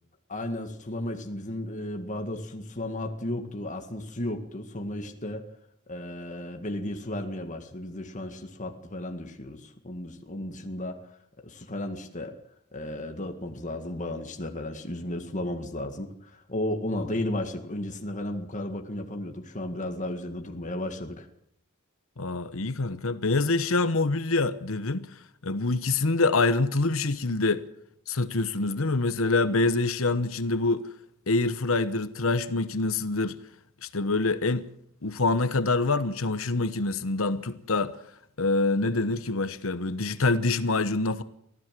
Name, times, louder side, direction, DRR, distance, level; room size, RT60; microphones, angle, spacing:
voice 1, 0.3-5.4 5.9-11.2 11.4-12.3 12.7-21.3, left 1 dB, 35° left, 1.9 m, -34 dB
voice 2, 22.2-25.1 25.4-27.6 28.1-30.9 31.3-33.4 33.8-34.7 35.0-38.0 38.4-41.2, left 3 dB, 70° left, 1.1 m, -25 dB
24.5 x 15.5 x 7.6 m
head